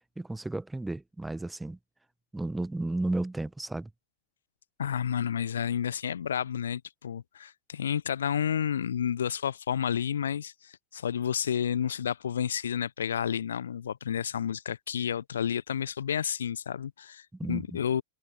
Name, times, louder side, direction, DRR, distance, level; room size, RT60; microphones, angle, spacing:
voice 1, 0.2-1.8 2.3-3.9 17.3-17.8, right 2 dB, 5° right, 1.3 m, -33 dB
voice 2, 4.8-18.0, left 8 dB, 65° left, 1.1 m, -31 dB
figure-of-eight pair, 90°, 0 cm